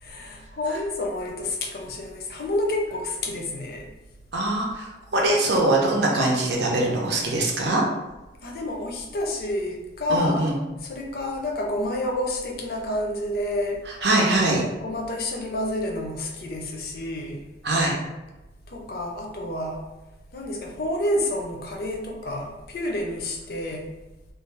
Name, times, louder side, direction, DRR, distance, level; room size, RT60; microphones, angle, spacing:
voice 1, 0.0-3.9 8.4-10.4 10.8-13.9 14.8-17.4 18.7-19.8 20.3-23.9, left 1 dB, 55° left, 1 dB, 0.5 m, -29 dB
voice 2, 4.3-4.9 5.1-7.8 10.1-10.6 14.0-14.6 17.6-17.9, right 2 dB, 80° right, -1 dB, 0.6 m, -22 dB
2.5 x 2.2 x 3.2 m, 1.1 s
head